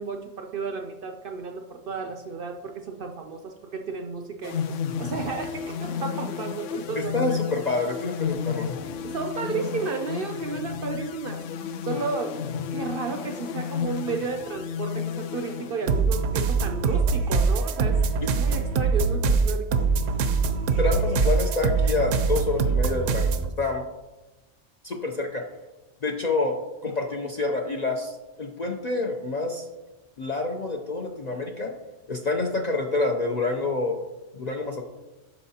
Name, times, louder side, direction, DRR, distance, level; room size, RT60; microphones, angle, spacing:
voice 1, 0.0-7.4 9.0-11.4 11.8-18.0 18.3-19.9, right 4 dB, 60° right, 5 dB, 0.6 m, -33 dB
sound 1, 4.4-16.3, left 7 dB, 75° left, 0.9 m, -32 dB
voice 2, 7.0-8.8 20.8-23.9 24.8-25.4 26.0-26.6 26.8-29.7 30.2-31.7 32.1-34.0 34.3-34.8, left 3 dB, 50° left, 2 dB, 0.5 m, -27 dB
sound 2, 15.9-23.5, right 4 dB, 80° right, 1.0 m, -23 dB
12.0 x 4.6 x 2.8 m, 1.1 s
omnidirectional pair, 1.3 m